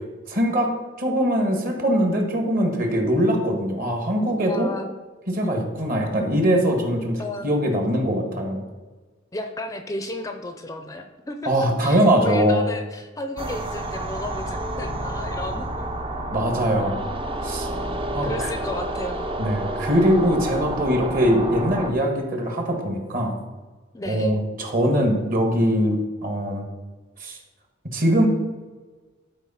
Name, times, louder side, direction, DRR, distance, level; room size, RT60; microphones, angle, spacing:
voice 1, 0.3-0.7 1.0-4.7 5.3-8.6 11.5-12.7 16.3-17.0 17.4-17.7 18.1-18.5 19.4-23.4 24.1-26.7 27.2-27.4 27.8-28.3, equal, 45° right, 3 dB, 1.8 m, -22 dB
voice 2, 4.5-4.9 7.2-7.7 9.3-15.9 17.6-19.3 23.9-24.4 27.2-27.3, left 2 dB, 15° left, 6 dB, 0.6 m, -33 dB
sound 1, 13.4-21.9, right 1 dB, 30° right, 0.7 m, -29 dB
11.5 x 4.5 x 5.7 m, 1.3 s
head